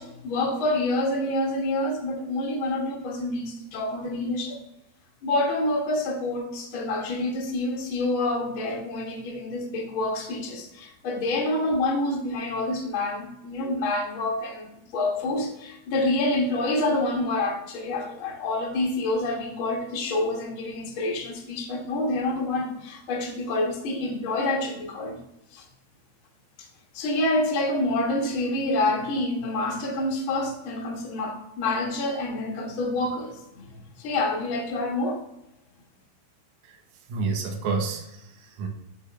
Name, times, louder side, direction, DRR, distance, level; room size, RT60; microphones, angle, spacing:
voice 1, 0.0-4.6 5.2-14.7 14.9-25.2 25.5-25.6 26.9-35.2, left 2 dB, 70° left, 0 dB, 1.2 m, -27 dB
voice 2, 37.1-38.7, right 4 dB, 65° right, 2 dB, 2.1 m, -29 dB
7.9 x 6.2 x 3.3 m, 0.87 s
omnidirectional pair, 4.4 m